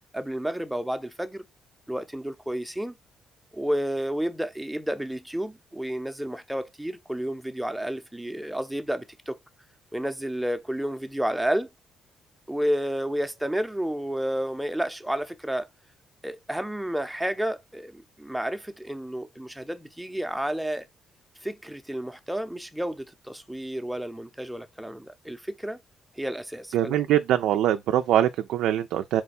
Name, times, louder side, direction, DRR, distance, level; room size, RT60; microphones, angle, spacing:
voice 1, 0.1-1.4 1.9-2.9 3.5-9.4 9.9-11.7 12.5-15.7 16.2-20.9 21.4-25.8 26.2-27.0, right 1 dB, 5° right, 0.6 m, -31 dB
voice 2, 26.7-29.2, right 11 dB, 85° right, 0.3 m, -23 dB
4.3 x 2.2 x 4.0 m
cardioid pair, 90°, 0 cm